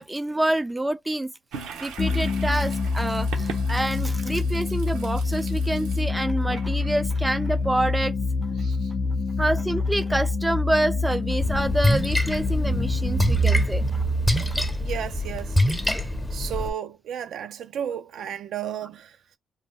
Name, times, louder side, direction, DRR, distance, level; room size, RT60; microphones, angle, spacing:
voice 1, 0.0-1.3 1.8-8.1 9.4-14.0, right 1 dB, 10° right, 0.3 m, -27 dB
Toilet flush, 1.5-8.1, right 5 dB, 90° right, 0.9 m, -41 dB
sound 1, 2.0-15.3, left 4 dB, 55° left, 0.5 m, -27 dB
voice 2, 8.5-9.2 14.8-15.6 16.3-19.4, right 9 dB, 70° right, 0.5 m, -34 dB
Splash splatter, 11.4-16.7, right 1 dB, 5° left, 0.7 m, -24 dB
2.7 x 2.2 x 3.5 m
cardioid pair, 90°, 0 cm